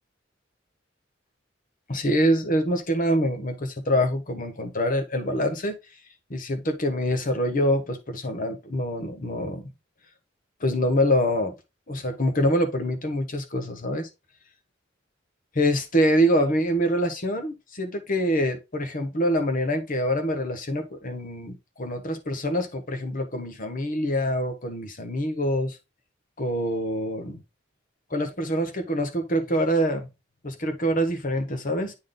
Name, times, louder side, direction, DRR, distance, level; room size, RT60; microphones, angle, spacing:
voice 1, 1.9-5.7 6.3-9.7 10.6-11.5 11.9-14.1 15.5-25.8 26.4-27.4 28.1-30.1 30.4-31.9, equal, 45° left, 1.2 m, -25 dB
8.6 x 3.9 x 3.7 m
head